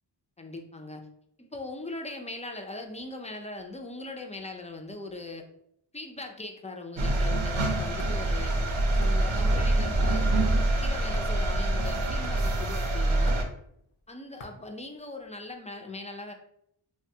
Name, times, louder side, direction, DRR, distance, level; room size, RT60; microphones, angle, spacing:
voice 1, 0.4-1.1 1.4-5.5 5.9-8.6 9.0-13.4 14.1-16.3, left 2 dB, 15° left, 3 dB, 0.3 m, -40 dB
sound 1, 7.0-13.4, right 1 dB, 75° right, 0.6 m, -25 dB
sound 2, 8.0-15.5, left 2 dB, 75° left, 0.6 m, -48 dB
3.1 x 2.2 x 2.7 m, 0.73 s
wide cardioid pair, 40°, 49 cm